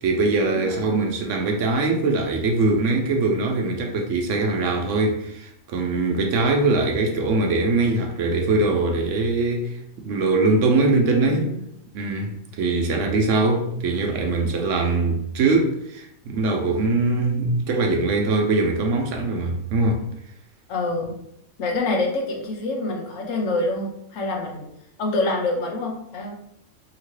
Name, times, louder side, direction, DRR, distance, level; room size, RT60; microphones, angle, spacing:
voice 1, 0.0-11.5 11.9-20.0, right 3 dB, 70° right, 0.9 m, -22 dB
voice 2, 11.3-11.6 20.7-21.1 21.6-24.7 25.0-26.3, left 2 dB, 75° left, 1.1 m, -26 dB
2.9 x 2.8 x 3.1 m
omnidirectional pair, 1.4 m